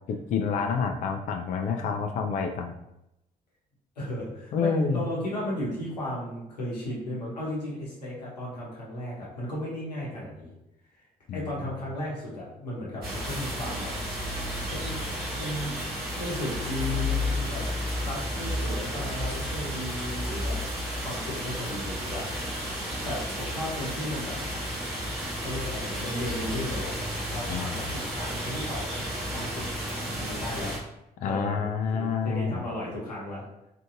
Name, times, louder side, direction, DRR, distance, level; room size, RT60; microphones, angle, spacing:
voice 1, 0.3-2.7 4.5-5.0 11.3-11.5 27.5-27.8 31.2-32.7, left 5 dB, 40° left, 4 dB, 0.4 m, -28 dB
voice 2, 4.0-10.5 11.3-13.9 14.6-17.7 18.0-22.7 23.0-24.4 25.4-26.9 27.3-29.0 29.3-29.7 30.0-30.7 31.2-33.4, left 1 dB, 85° left, -5 dB, 0.7 m, -35 dB
sound 1, 13.0-30.8, equal, 50° right, 1.3 m, -32 dB
3.4 x 2.6 x 2.4 m, 0.86 s
figure-of-eight pair, 45°, 20 cm